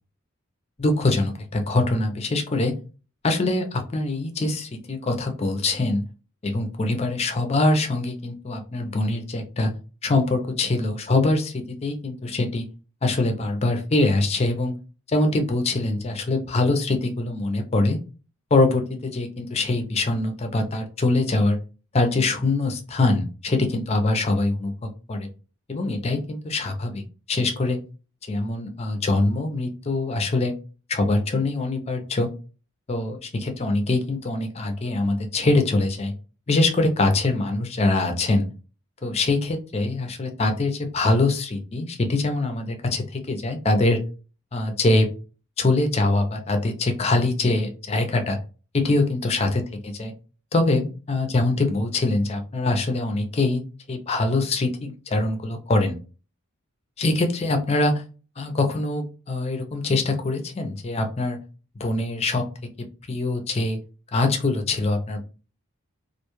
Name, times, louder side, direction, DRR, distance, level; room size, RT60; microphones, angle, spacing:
voice 1, 0.8-2.7 3.2-6.0 6.4-9.7 10.0-12.7 13.0-14.7 15.1-18.0 18.5-21.6 21.9-25.3 25.7-27.0 27.3-27.8 28.3-30.5 30.9-32.3 32.9-36.1 36.5-38.5 39.0-44.0 44.5-45.1 45.6-48.4 48.7-50.1 50.5-55.9 57.0-58.0 58.4-61.4 61.8-62.4 63.1-63.8 64.1-65.2, left 2 dB, 30° left, 5 dB, 0.5 m, -23 dB
2.4 x 2.2 x 3.0 m, 0.34 s
head